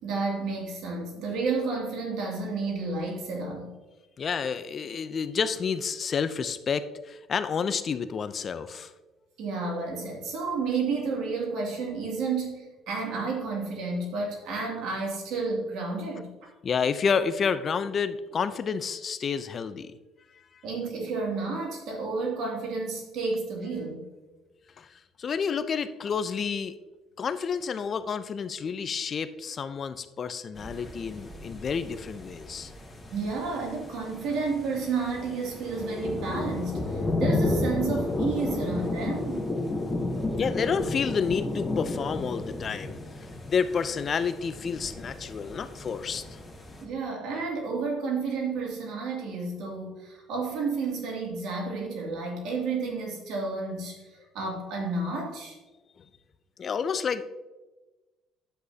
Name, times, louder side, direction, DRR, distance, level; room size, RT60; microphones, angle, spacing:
voice 1, 0.0-3.7 9.4-16.3 20.6-24.0 33.1-39.5 46.8-54.0 54.3-55.6, right 4 dB, 75° right, -1 dB, 2.5 m, -31 dB
voice 2, 4.2-8.9 16.6-20.0 24.8-24.9 25.2-26.7 27.2-32.7 39.8-40.0 40.4-43.0 43.5-46.4 56.6-57.2, left 6 dB, 50° left, 12 dB, 0.6 m, -29 dB
sound 1, 30.5-46.8, left 2 dB, 20° left, 2.2 m, -33 dB
10.0 x 8.0 x 2.8 m, 1.1 s
supercardioid pair, 70°, 0 cm